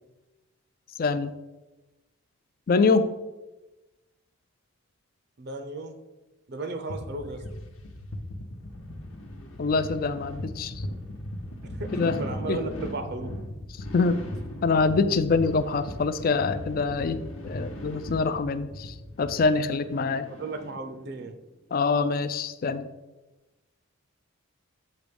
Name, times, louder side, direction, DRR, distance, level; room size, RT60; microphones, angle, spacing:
voice 1, 1.0-1.3 2.7-3.1 9.6-10.7 12.0-12.2 12.5-12.6 13.9-14.2 14.6-20.3 21.7-22.9, left 4 dB, 40° left, 12 dB, 0.3 m, -25 dB
voice 2, 5.4-6.0 6.5-7.5 11.7-13.3 20.3-21.4, right 3 dB, 50° right, 7 dB, 0.5 m, -35 dB
sound 1, 6.9-19.5, left 1 dB, 90° left, 0.9 m, -39 dB
sound 2, 7.4-21.3 21.7-21.8, left 1 dB, 65° left, 1.0 m, -44 dB
7.5 x 3.0 x 5.2 m, 1.1 s
head